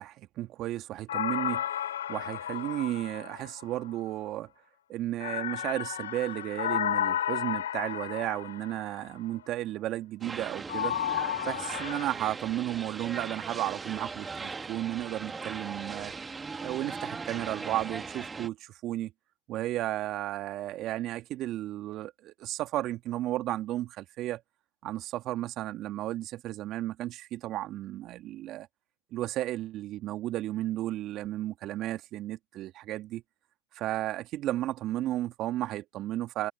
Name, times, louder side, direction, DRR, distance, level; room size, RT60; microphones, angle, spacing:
voice 1, 0.0-1.6 2.1-4.5 4.9-11.0 11.4-16.1 16.6-19.1 19.5-24.4 24.8-28.7 29.1-33.2 33.7-36.5, right 14 dB, 45° right, 2.1 m, -33 dB
sound 1, 1.1-3.9 5.2-9.0 10.7-12.0, left 11 dB, 80° left, 4.7 m, -32 dB
sound 2, 10.2-18.5, right 4 dB, 20° right, 2.4 m, -39 dB
hypercardioid pair, 90°, 0 cm